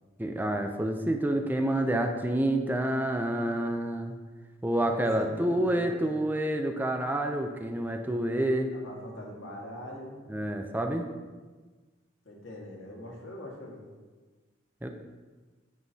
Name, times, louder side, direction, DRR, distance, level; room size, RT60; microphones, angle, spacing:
voice 1, 0.2-4.2 4.6-8.7 10.3-11.1 14.8-14.9, right 1 dB, 10° right, 5 dB, 0.4 m, -28 dB
voice 2, 4.9-6.2 8.7-10.3 12.2-13.9, left 1 dB, 90° left, -3 dB, 1.7 m, -42 dB
9.0 x 5.6 x 2.7 m, 1.3 s
head